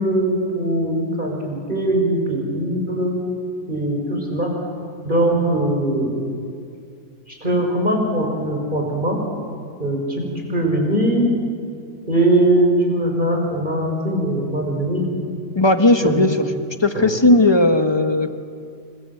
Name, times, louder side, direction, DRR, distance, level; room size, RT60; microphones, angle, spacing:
voice 1, 0.0-3.2 3.7-4.5 5.0-6.3 7.3-9.2 9.8-11.4 12.1-15.1 16.0-16.3 16.9-17.1, right 1 dB, 30° right, 0 dB, 6.0 m, -21 dB
voice 2, 15.5-16.4 16.8-18.3, left 2 dB, 15° left, 7 dB, 1.4 m, -16 dB
28.5 x 26.0 x 8.0 m, 2.3 s
omnidirectional pair, 1.8 m